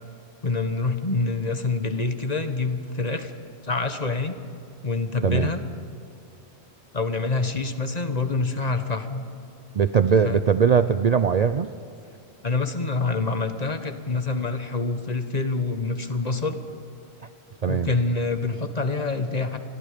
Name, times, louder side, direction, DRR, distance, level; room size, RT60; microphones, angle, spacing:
voice 1, 0.4-4.4 4.8-5.6 6.9-9.3 10.2-10.4 12.4-16.6 17.7-19.6, left 3 dB, 35° left, 8 dB, 1.4 m, -26 dB
voice 2, 9.7-11.7 17.6-17.9, right 6 dB, 45° right, 11 dB, 0.5 m, -20 dB
28.5 x 22.0 x 5.1 m, 2.6 s
omnidirectional pair, 1.2 m